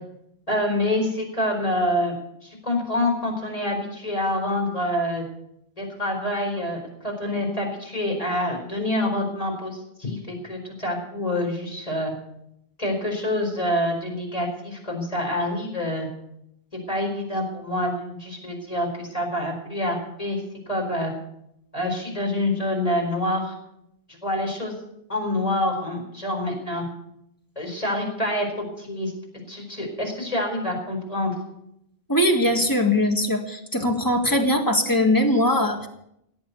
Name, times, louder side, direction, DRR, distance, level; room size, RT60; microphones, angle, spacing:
voice 1, 0.5-2.1 2.4-5.2 5.8-12.1 12.8-16.1 16.7-21.1 21.7-23.5 24.1-24.7 25.1-26.8 27.6-29.1 29.5-31.3, left 1 dB, 35° left, 1 dB, 4.7 m, -26 dB
voice 2, 32.1-35.9, left 1 dB, 20° left, 4 dB, 1.8 m, -21 dB
17.5 x 8.4 x 8.2 m, 0.78 s
omnidirectional pair, 1.0 m